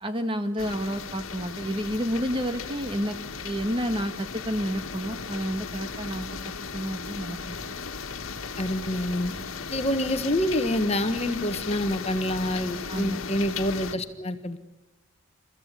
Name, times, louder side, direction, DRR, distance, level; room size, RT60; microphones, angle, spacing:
voice 1, 0.0-3.2 3.4-6.4 6.7-7.4 12.9-13.2, equal, 25° right, 7 dB, 1.6 m, -30 dB
sound 1, 0.6-14.0, left 5 dB, 70° left, 1.7 m, -36 dB
voice 2, 8.6-9.3 9.7-14.6, left 1 dB, 30° left, 8 dB, 1.4 m, -27 dB
29.5 x 15.0 x 8.4 m, 1.1 s
head